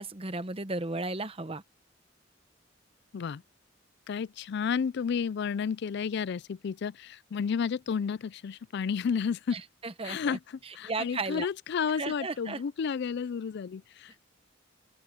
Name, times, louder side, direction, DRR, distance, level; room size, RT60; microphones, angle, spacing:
voice 1, 0.0-1.6 9.5-10.4 10.8-11.5 12.0-12.6, right 3 dB, 30° right, 1.0 m, -34 dB
voice 2, 4.1-9.6 10.0-14.3, left 6 dB, 60° left, 0.4 m, -32 dB
open air
head